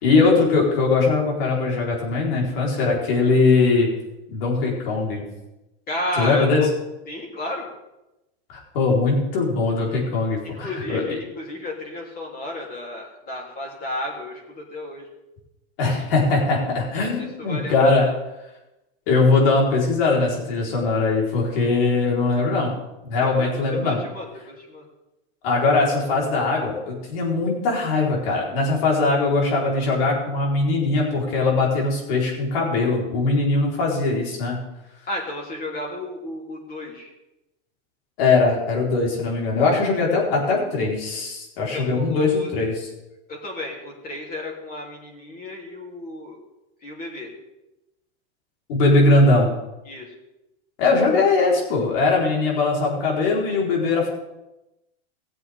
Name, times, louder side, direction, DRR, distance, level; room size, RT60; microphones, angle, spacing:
voice 1, 0.0-3.9 4.3-5.2 6.2-6.6 8.5-11.0 15.8-18.1 19.1-22.7 23.0-24.0 25.4-34.6 38.2-42.9 48.7-49.5 50.8-54.1, left 3 dB, 65° left, -2 dB, 4.3 m, -20 dB
voice 2, 5.9-6.7 7.1-7.7 10.4-15.1 17.2-18.1 23.3-24.8 35.1-37.1 41.7-42.5 43.3-46.4 46.8-47.3 49.9-50.1, left 1 dB, 30° left, -1 dB, 3.3 m, -33 dB
18.5 x 7.8 x 3.6 m, 0.96 s
supercardioid pair, 140°, 31 cm